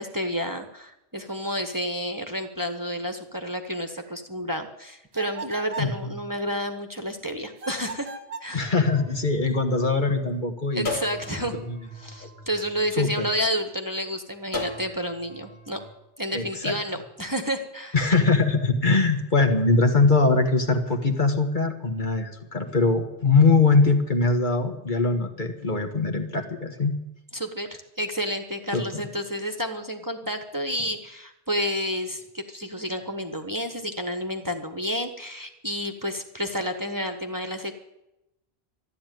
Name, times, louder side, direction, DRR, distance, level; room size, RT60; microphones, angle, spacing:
voice 1, 0.0-8.1 8.4-8.7 10.7-11.6 11.9-15.8 16.2-17.9 27.3-37.7, equal, 20° right, 5 dB, 1.3 m, -30 dB
sound 1, 5.1-6.0 7.6-8.6, right 3 dB, 85° right, 1.5 m, -38 dB
voice 2, 5.8-6.1 8.5-10.9 11.5-11.8 12.2-12.3 13.0-13.3 16.3-16.7 17.9-26.9 28.7-28.8, left 3 dB, 50° left, 4 dB, 1.7 m, -22 dB
sound 2, 8.7-10.2 10.8-13.4 14.5-15.9, left 3 dB, 80° left, 2.7 m, -38 dB
13.0 x 12.0 x 9.2 m, 0.89 s
omnidirectional pair, 1.1 m